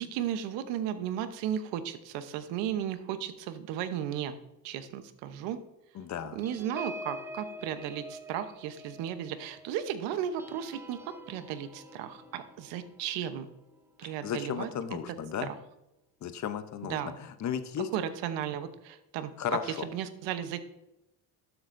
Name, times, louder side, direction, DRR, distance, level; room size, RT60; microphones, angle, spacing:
voice 1, 0.0-4.4 4.6-5.6 6.3-11.0 11.3-13.5 14.0-14.7 15.4-15.6 16.8-17.1 17.9-19.3 19.8-20.6, right 10 dB, 90° right, 10 dB, 1.0 m, -35 dB
voice 2, 5.9-6.4 14.0-15.5 16.2-17.9 19.4-19.9, left 8 dB, 40° left, 11 dB, 0.8 m, -35 dB
sound 1, 6.4-15.4 15.8-16.0 16.3-16.6, equal, 5° right, 0.5 m, -47 dB
12.5 x 8.0 x 2.6 m, 0.88 s
cardioid pair, 115°, 42 cm